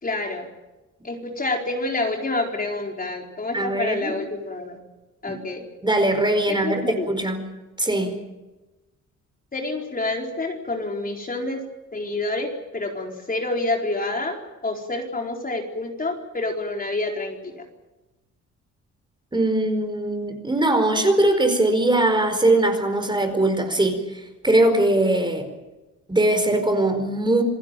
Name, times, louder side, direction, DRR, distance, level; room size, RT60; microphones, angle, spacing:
voice 1, 0.0-0.5 1.0-4.8 5.2-5.6 6.6-7.1 9.5-11.6 11.9-14.4 14.6-17.6, left 2 dB, 30° left, 2 dB, 4.3 m, -28 dB
voice 2, 3.5-4.2 5.3-5.4 5.8-7.4 7.8-8.2 19.3-25.4 26.1-27.4, right 1 dB, 15° right, 7 dB, 4.8 m, -21 dB
28.0 x 16.5 x 9.1 m, 1.1 s
cardioid pair, 90°, 30 cm